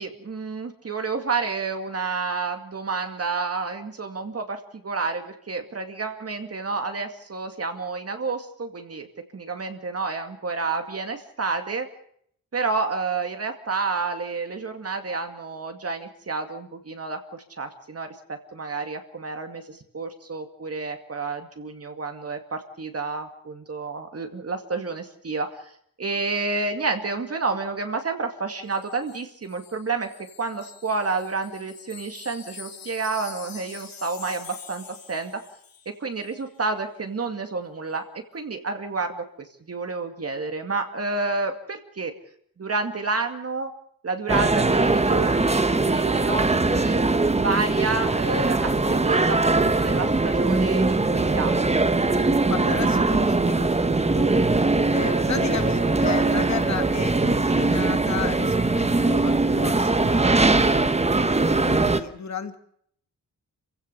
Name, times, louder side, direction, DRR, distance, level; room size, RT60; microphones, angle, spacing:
voice 1, 0.0-9.1 9.3-11.9 12.5-25.7 26.0-30.1 30.4-35.3 36.0-38.1 38.3-39.2 39.7-42.1 42.6-43.7 44.0-47.0 47.4-51.6, right 4 dB, 45° right, 6 dB, 2.3 m, -30 dB
Wind chime, 28.7-35.9 36.2-36.4, left 7 dB, 80° left, 3.2 m, -45 dB
sound 1, 44.3-62.0, right 3 dB, 20° right, 1.2 m, -21 dB
voice 2, 52.2-54.4 54.9-61.0 61.7-62.5, left 6 dB, 55° left, 8 dB, 2.2 m, -34 dB
28.5 x 16.0 x 6.9 m, 0.67 s
wide cardioid pair, 140°, 34 cm